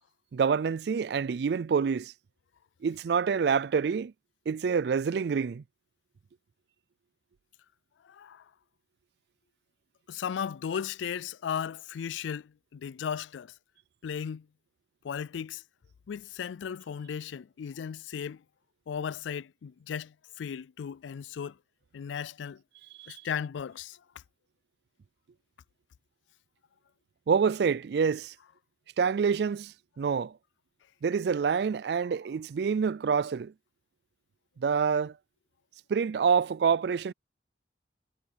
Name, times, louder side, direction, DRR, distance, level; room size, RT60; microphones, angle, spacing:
voice 1, 0.3-2.1 2.8-4.1 4.5-5.6 23.0-23.1 27.3-28.3 29.0-30.3 31.0-33.5 34.6-35.1 35.9-37.1, right 6 dB, 60° right, 0.3 m, -27 dB
voice 2, 8.0-8.5 10.1-13.5 14.0-14.5 15.0-15.6 16.1-18.4 18.9-21.6 21.9-22.6 23.1-24.0, left 7 dB, 85° left, 0.4 m, -36 dB
head